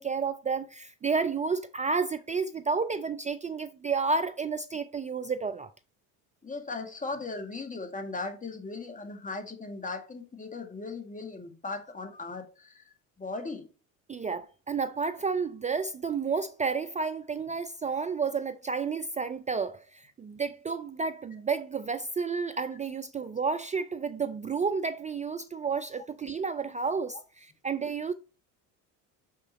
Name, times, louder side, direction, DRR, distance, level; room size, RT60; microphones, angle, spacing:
voice 1, 0.0-5.7 14.1-28.1, right 5 dB, 15° right, 0.3 m, -31 dB
voice 2, 6.4-12.8 13.2-13.7, left 3 dB, 15° left, 1.8 m, -38 dB
5.9 x 5.8 x 4.2 m
hypercardioid pair, 65°, 47 cm